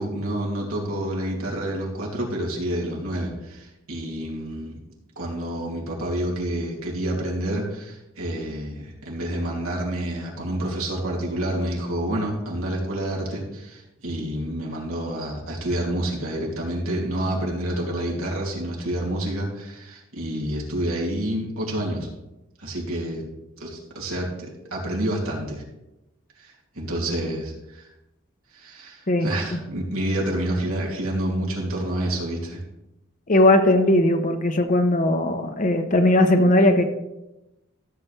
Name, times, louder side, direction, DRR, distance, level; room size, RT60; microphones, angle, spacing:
voice 1, 0.0-4.8 5.2-22.1 22.6-23.2 23.6-25.6 26.4-27.9 28.5-32.6, right 1 dB, 85° right, -2 dB, 2.8 m, -28 dB
voice 2, 33.3-36.8, left 1 dB, 35° left, 7 dB, 0.9 m, -18 dB
14.5 x 7.5 x 3.4 m, 0.95 s
head